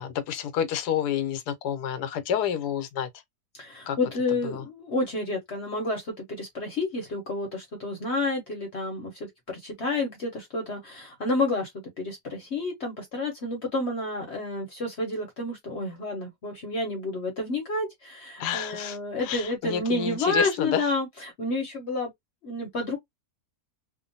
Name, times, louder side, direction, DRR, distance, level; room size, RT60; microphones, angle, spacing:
voice 1, 0.0-3.1 3.9-4.0 4.4-4.6 18.4-20.8, left 9 dB, 85° left, 1.2 m, -29 dB
voice 2, 3.5-11.7 12.0-22.1 22.4-23.0, left 2 dB, 50° left, 1.0 m, -30 dB
2.8 x 2.1 x 2.5 m
omnidirectional pair, 1.7 m